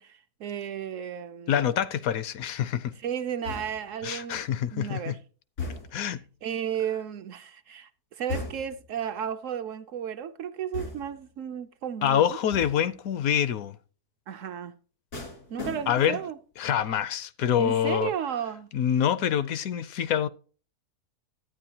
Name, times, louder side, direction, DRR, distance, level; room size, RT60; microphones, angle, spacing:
voice 1, 0.0-1.7 3.0-4.4 4.7-5.2 6.4-12.4 14.3-14.7 15.5-16.4 17.6-18.7, right 9 dB, 65° right, 0.8 m, -34 dB
voice 2, 1.5-2.9 4.0-5.1 5.9-6.2 12.0-13.8 15.9-16.2 16.6-18.1 18.7-20.3, left 9 dB, 70° left, 1.0 m, -26 dB
sound 1, 3.4-4.0 5.6-6.2 8.3-8.9 10.7-11.3 12.5-13.0 15.1-16.2 16.6-17.0, left 3 dB, 85° left, 3.1 m, -37 dB
12.5 x 9.2 x 2.8 m
omnidirectional pair, 1.6 m